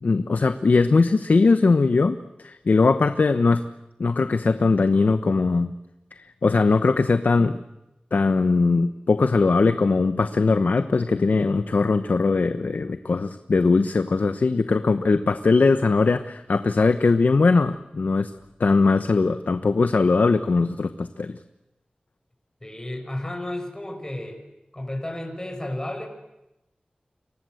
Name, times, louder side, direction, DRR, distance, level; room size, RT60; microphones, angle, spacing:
voice 1, 0.0-3.6 4.0-5.8 6.2-7.6 8.1-18.3 18.6-21.4, left 4 dB, 75° left, 10 dB, 1.1 m, -20 dB
voice 2, 22.6-24.4 24.7-26.1, left 1 dB, 20° left, 2 dB, 6.2 m, -32 dB
30.0 x 24.5 x 7.9 m, 0.93 s
wide cardioid pair, 75°, 3 cm